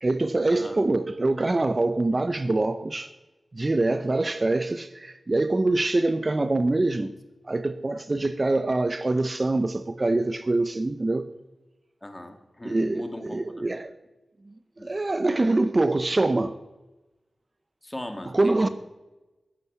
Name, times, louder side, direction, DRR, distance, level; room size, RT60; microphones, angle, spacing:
voice 1, 0.0-3.1 3.5-7.1 7.5-11.3 12.6-13.9 14.5-14.6 14.8-16.6 18.3-18.7, right 2 dB, 35° right, 0.7 m, -24 dB
voice 2, 12.0-13.5 14.8-14.9 17.8-18.7, left 1 dB, 20° left, 2.1 m, -39 dB
14.0 x 8.4 x 9.3 m
wide cardioid pair, 80°, 0 cm